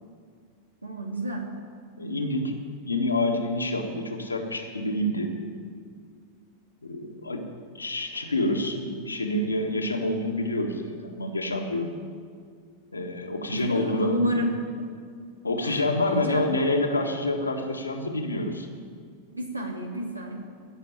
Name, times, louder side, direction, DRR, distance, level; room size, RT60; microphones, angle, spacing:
voice 1, 0.8-1.5 13.5-14.6 15.6-16.5 19.3-20.4, right 1 dB, 85° right, 1 dB, 2.2 m, -31 dB
voice 2, 2.0-2.6 2.8-5.4 6.8-7.5 7.7-12.0 12.9-14.4 15.4-18.7, left 1 dB, 80° left, 2 dB, 1.7 m, -27 dB
16.0 x 6.7 x 9.6 m, 2.1 s
figure-of-eight pair, 90°, 0 cm